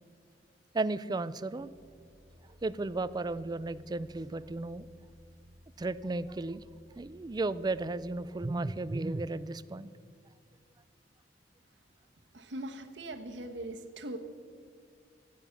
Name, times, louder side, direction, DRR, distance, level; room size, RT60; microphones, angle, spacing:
voice 1, 0.7-1.7 2.6-4.9 5.8-6.6 7.0-9.9, right 2 dB, 25° right, 16 dB, 0.4 m, -34 dB
sound 1, 1.6-9.0, equal, 10° left, 1.8 m, -58 dB
voice 2, 12.3-14.2, right 1 dB, 80° right, 7 dB, 1.1 m, -40 dB
15.5 x 9.0 x 5.9 m, 2.3 s
head